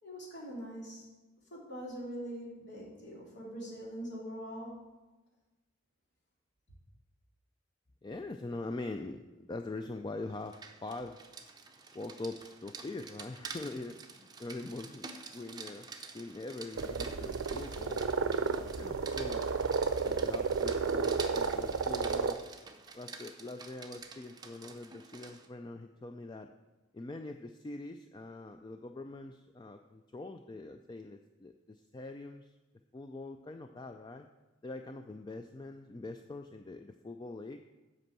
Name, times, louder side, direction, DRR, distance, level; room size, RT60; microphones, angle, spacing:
voice 1, 0.0-1.0 1.5-4.7, equal, 60° left, -4 dB, 3.2 m, -43 dB
voice 2, 8.0-10.6 10.8-11.2 11.9-15.9 16.1-19.5 20.1-22.4 22.9-26.5 26.9-32.6 32.9-34.3 34.6-37.6, left 2 dB, 20° left, 6 dB, 0.3 m, -43 dB
Rain, 10.3-25.5, right 4 dB, 20° right, 0.6 m, -48 dB
sound 1, 16.8-22.3, right 5 dB, 75° right, 0.5 m, -32 dB
8.1 x 5.3 x 7.3 m, 1.1 s
head